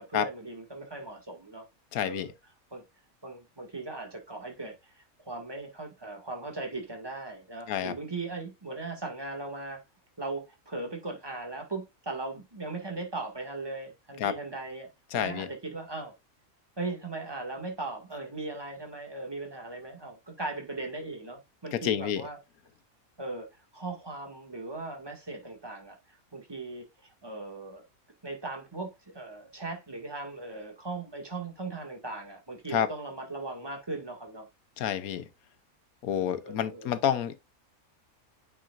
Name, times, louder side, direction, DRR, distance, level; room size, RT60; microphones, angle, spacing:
voice 1, 0.0-1.7 2.0-2.3 2.7-2.8 3.2-9.8 10.2-14.9 15.1-16.1 16.8-22.4 23.2-27.8 28.2-34.5 36.1-36.9, right 3 dB, 15° right, 1.9 m, -38 dB
voice 2, 1.9-2.3 7.7-7.9 14.2-14.3 15.1-15.5 21.7-22.2 32.7-32.9 34.8-35.2 36.0-37.4, left 9 dB, 90° left, 1.2 m, -29 dB
8.9 x 4.9 x 2.4 m
omnidirectional pair, 1.5 m